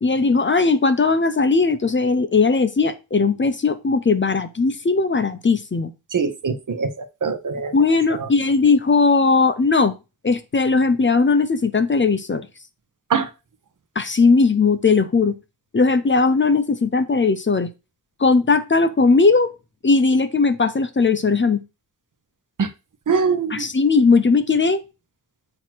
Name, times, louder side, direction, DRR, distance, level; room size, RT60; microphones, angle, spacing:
voice 1, 0.0-5.9 7.7-9.9 10.2-12.5 14.0-15.4 15.7-17.7 18.2-19.5 19.8-21.6 23.5-24.8, left 4 dB, 30° left, 0.7 m, -18 dB
voice 2, 6.1-7.8 8.2-8.3 13.1-13.3 22.6-22.7 23.1-23.7, right 5 dB, 55° right, 0.9 m, -23 dB
7.6 x 2.9 x 6.0 m
wide cardioid pair, 120°, 37 cm